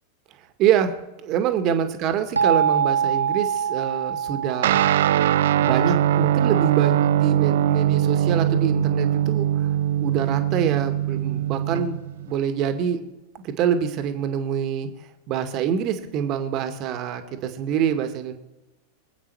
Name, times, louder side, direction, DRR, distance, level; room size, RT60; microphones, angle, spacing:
voice 1, 0.6-5.1 5.6-9.7 10.0-12.0 12.2-13.1 13.4-14.9 15.3-18.3, right 8 dB, 40° right, 7 dB, 1.8 m, -25 dB
sound 1, 2.4-7.1, right 8 dB, 80° right, 1.0 m, -26 dB
Guitar, 4.6-12.3, right 11 dB, 55° right, 0.5 m, -21 dB
25.5 x 8.7 x 4.7 m, 1.0 s
figure-of-eight pair, 90°, 0 cm